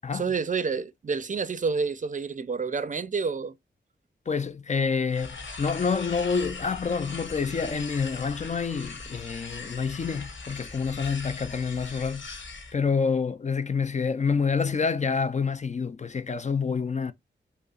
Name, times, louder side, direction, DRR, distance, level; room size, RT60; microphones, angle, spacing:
voice 1, 0.1-3.5, right 5 dB, 45° right, 0.5 m, -29 dB
voice 2, 4.3-12.3 12.7-17.1, left 5 dB, 40° left, 0.4 m, -27 dB
sound 1, 5.1-12.7, left 3 dB, 90° left, 1.0 m, -40 dB
5.2 x 2.0 x 2.4 m
wide cardioid pair, 80°, 19 cm